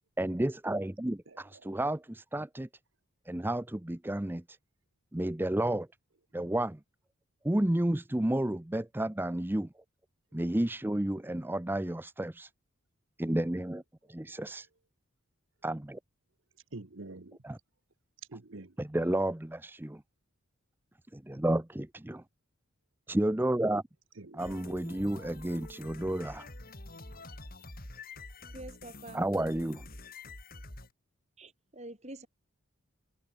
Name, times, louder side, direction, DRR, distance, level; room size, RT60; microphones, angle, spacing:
voice 1, 0.2-2.7 3.3-4.6 5.1-5.9 6.3-6.8 7.4-9.7 10.3-12.5 13.2-13.8 14.1-14.7 15.6-16.0 17.4-17.6 18.8-20.0 21.1-22.2 23.1-23.8 24.3-26.5 29.1-29.8, right 1 dB, 10° right, 0.5 m, -31 dB
voice 2, 1.3-1.8 16.7-17.4 18.3-18.7 24.2-24.6, right 2 dB, 60° right, 1.1 m, -47 dB
sound 1, 24.4-30.9, left 2 dB, 40° left, 6.7 m, -47 dB
voice 3, 28.5-29.2 31.4-32.3, right 1 dB, 30° right, 4.8 m, -46 dB
head